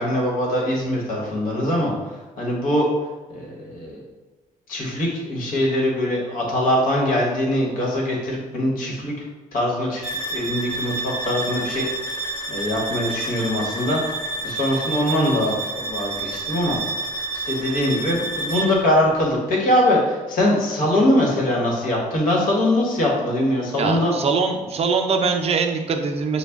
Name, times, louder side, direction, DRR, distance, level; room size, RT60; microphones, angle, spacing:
voice 1, 0.0-1.9 2.4-2.9 3.3-4.0 4.7-9.1 9.5-11.9 12.2-14.0 14.4-16.8 17.3-24.2, left 1 dB, 85° left, -3 dB, 1.2 m, -22 dB
sound 1, 10.0-18.8, right 2 dB, 35° left, 1.2 m, -29 dB
voice 2, 23.8-26.4, right 5 dB, 45° right, 4 dB, 0.5 m, -22 dB
5.7 x 2.2 x 3.5 m, 1.2 s
cardioid pair, 115°, 14 cm